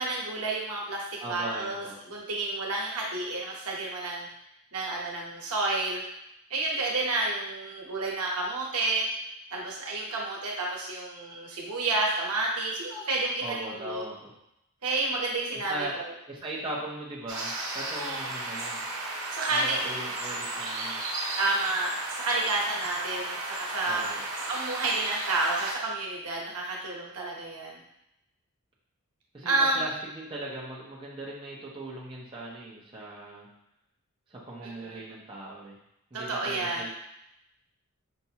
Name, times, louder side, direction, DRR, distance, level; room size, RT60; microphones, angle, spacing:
voice 1, 0.0-4.3 4.7-6.0 6.5-9.1 9.5-14.0 14.8-16.1 18.0-18.3 19.3-19.9 21.4-24.0 24.5-27.8 29.4-29.8 34.6-35.0 36.1-36.8, right 2 dB, 90° right, -2 dB, 0.9 m, -30 dB
voice 2, 1.2-1.9 13.4-14.3 15.7-16.0 16.3-18.8 19.5-21.0 23.8-24.2 29.3-33.5 34.3-35.8 36.1-36.9, right 1 dB, 20° right, -5 dB, 0.7 m, -39 dB
sound 1, 17.3-25.7, right 2 dB, 65° right, 0.9 m, -34 dB
5.5 x 2.5 x 2.8 m, 0.83 s
head